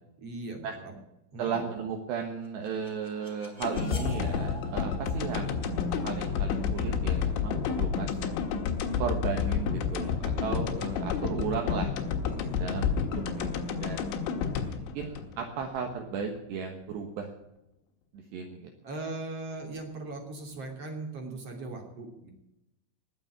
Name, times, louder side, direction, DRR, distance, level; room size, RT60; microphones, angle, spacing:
voice 1, 0.2-0.9 1.3-1.5 12.3-12.8 18.8-22.3, right 2 dB, 35° right, 2 dB, 3.1 m, -39 dB
voice 2, 1.4-5.7 6.0-8.2 9.0-11.9 12.6-12.9 13.1-14.1 14.8-17.3 18.1-18.7, right 6 dB, 70° right, 3 dB, 3.2 m, -35 dB
sound 1, 2.4-11.4, left 2 dB, 15° left, 3.1 m, -40 dB
sound 2, 3.6-15.9 16.2-16.3, left 6 dB, 80° left, 3.9 m, -30 dB
20.5 x 7.2 x 9.6 m, 0.91 s
omnidirectional pair, 5.6 m